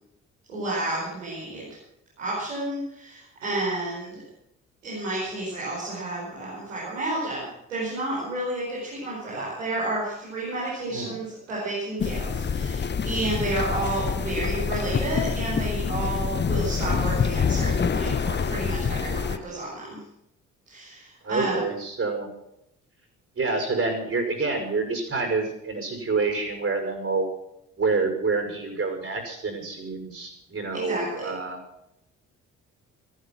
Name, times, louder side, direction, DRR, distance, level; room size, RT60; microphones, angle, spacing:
voice 1, 0.5-1.7 2.2-4.2 4.8-20.0 20.7-21.6 30.7-31.3, right 2 dB, 85° right, -8 dB, 5.1 m, -31 dB
sound 1, 12.0-19.4, left 6 dB, 30° left, 1.0 m, -26 dB
voice 2, 21.2-22.3 23.4-27.3 27.8-31.6, right 3 dB, 40° right, 4 dB, 6.0 m, -27 dB
15.5 x 14.0 x 6.1 m, 0.80 s
figure-of-eight pair, 45°, 36 cm